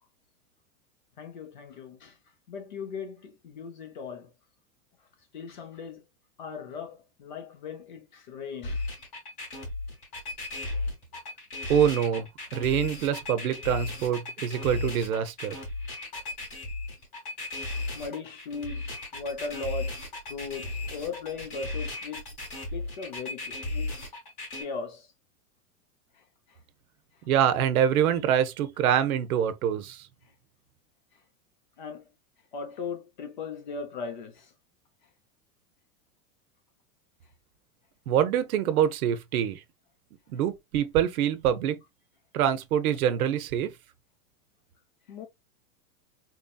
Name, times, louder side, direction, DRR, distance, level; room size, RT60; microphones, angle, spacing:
voice 1, 1.2-4.3 5.0-5.1 5.3-6.0 6.4-8.9 17.9-22.3 22.7-23.9 24.4-25.1 26.1-26.6 27.1-27.3 30.2-30.3 31.1-31.2 31.8-32.1 32.5-34.5 45.1-45.2, left 5 dB, 35° left, 0.5 m, -38 dB
sound 1, 8.6-24.6, left 2 dB, 15° left, 0.9 m, -35 dB
voice 2, 11.7-15.6 27.3-30.1 38.1-39.6 40.3-41.8 42.3-43.7, right 9 dB, 75° right, 0.8 m, -25 dB
4.3 x 2.7 x 2.2 m
supercardioid pair, 180°, 44 cm